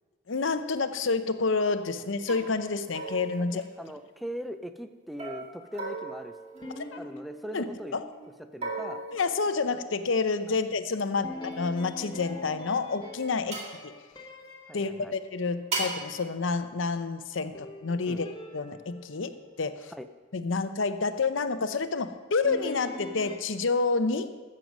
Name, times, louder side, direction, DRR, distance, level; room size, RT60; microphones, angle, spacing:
voice 1, 0.3-3.6 6.9-7.0 7.5-7.6 7.9-8.0 9.1-13.9 14.7-18.3 18.5-19.3 19.6-19.9 20.3-24.3, left 4 dB, 85° left, 10 dB, 0.7 m, -29 dB
sound 1, 1.6-1.8 2.3-2.5 2.9-4.3 5.2-7.4 8.6-10.0 11.5-12.8 13.5-13.8 15.7-16.1, right 3 dB, 35° right, 2.0 m, -38 dB
voice 2, 3.5-6.4 7.0-8.0 8.5-9.0 10.5-10.6 11.3-11.4 13.5-13.6 14.7-15.2 18.1-18.2 19.9-20.1, equal, ahead, 9 dB, 0.4 m, -40 dB
sound 2, 6.5-9.7 11.2-15.7 17.5-20.2 22.4-23.4, left 2 dB, 25° left, 1.0 m, -44 dB
14.0 x 7.7 x 5.3 m, 1.4 s
head